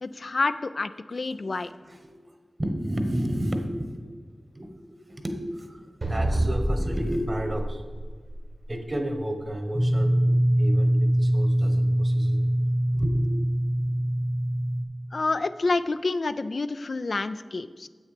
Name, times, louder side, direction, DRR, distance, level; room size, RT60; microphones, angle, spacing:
voice 1, 0.0-1.7 15.1-17.9, left 3 dB, 75° left, 12 dB, 0.3 m, -28 dB
voice 2, 2.6-4.0 4.5-7.8 8.7-10.2 10.6-12.5 12.9-13.3, equal, 40° right, 5 dB, 1.1 m, -31 dB
sound 1, 6.0-8.7, right 1 dB, 60° right, 1.4 m, -28 dB
sound 2, 9.7-14.8, right 1 dB, 5° right, 0.7 m, -23 dB
7.7 x 6.3 x 5.0 m, 1.5 s
wide cardioid pair, 50°, 0 cm